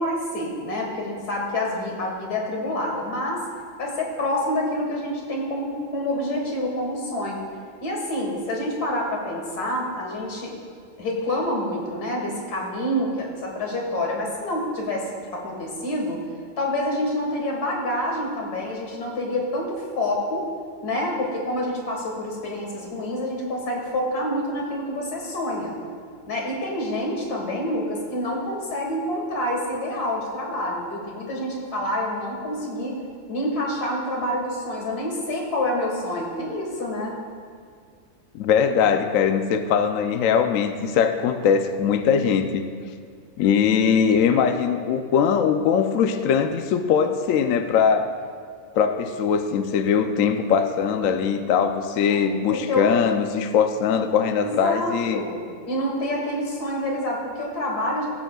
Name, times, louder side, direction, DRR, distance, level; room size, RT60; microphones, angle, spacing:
voice 1, 0.0-3.4 3.8-7.4 7.8-10.5 11.0-16.2 16.6-20.4 20.8-25.8 26.3-33.0 33.3-37.1 52.5-52.9 54.4-58.1, left 1 dB, 85° left, -1 dB, 2.1 m, -27 dB
voice 2, 38.3-42.6 43.4-48.1 48.7-55.2, left 7 dB, 70° left, 7 dB, 0.9 m, -21 dB
18.0 x 7.1 x 2.3 m, 2.1 s
omnidirectional pair, 1.6 m